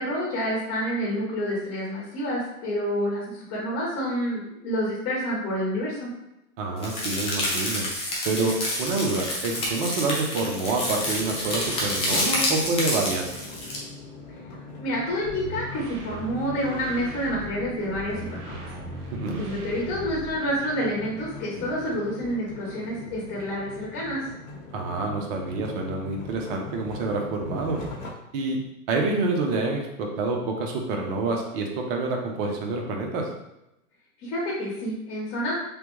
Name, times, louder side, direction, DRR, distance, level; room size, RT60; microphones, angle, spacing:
voice 1, 0.0-6.1 14.8-18.6 19.4-24.2 34.2-35.5, equal, 30° left, -5 dB, 1.0 m, -28 dB
voice 2, 6.6-7.9 8.2-13.3 19.1-19.4 24.7-27.8 28.3-28.6 28.9-33.3, right 3 dB, 35° right, 1 dB, 0.7 m, -27 dB
sound 1, 6.8-13.8, left 1 dB, 15° left, 0.5 m, -28 dB
sound 2, 11.0-28.1, left 2 dB, 60° left, 1.1 m, -41 dB
sound 3, 15.1-20.6, right 1 dB, 75° right, 0.9 m, -39 dB
3.3 x 2.1 x 3.0 m, 0.89 s
hypercardioid pair, 125°, 44 cm